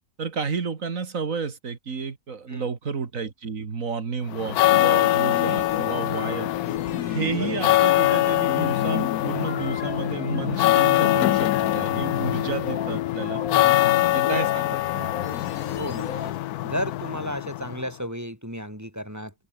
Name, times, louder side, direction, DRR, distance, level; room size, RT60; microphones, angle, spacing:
voice 1, 0.2-6.5 7.1-13.4 14.1-15.1, right 5 dB, 60° right, 2.4 m, -31 dB
sound 1, 4.3-17.9, left 15 dB, 80° left, 1.1 m, -23 dB
sound 2, 5.3-16.3, left 7 dB, 65° left, 1.8 m, -34 dB
voice 2, 7.4-7.7 13.5-13.9 15.8-16.4 16.6-19.3, equal, 10° right, 5.3 m, -33 dB
omnidirectional pair, 1.6 m